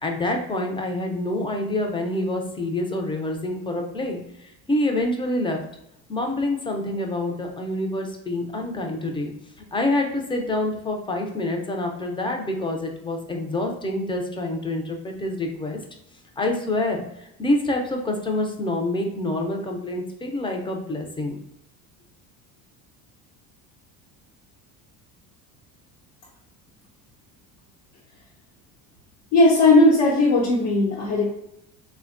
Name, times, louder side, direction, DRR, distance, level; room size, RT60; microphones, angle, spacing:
voice 1, 0.0-5.6 6.1-9.3 9.7-15.8 16.4-17.0 17.4-21.4, left 1 dB, 15° left, 3 dB, 0.4 m, -26 dB
voice 2, 29.3-31.3, left 2 dB, 75° left, -5 dB, 1.0 m, -17 dB
3.3 x 2.2 x 2.4 m, 0.82 s
supercardioid pair, 100°, 41 cm